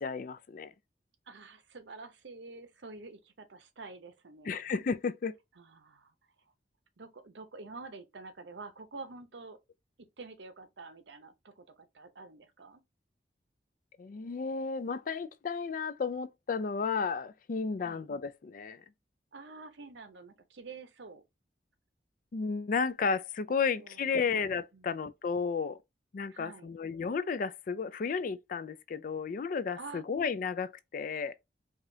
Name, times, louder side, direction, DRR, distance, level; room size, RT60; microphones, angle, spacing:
voice 1, 0.0-0.7 4.5-5.3 14.0-18.8 22.3-25.8 26.1-31.4, left 5 dB, 50° left, 0.4 m, -33 dB
voice 2, 1.3-4.6 5.6-6.1 7.0-9.6 10.2-12.8 17.8-18.1 19.3-21.2 23.7-24.2 24.7-25.0 26.3-26.7 29.8-30.0, right 3 dB, 85° right, 0.8 m, -48 dB
4.9 x 2.4 x 2.7 m
head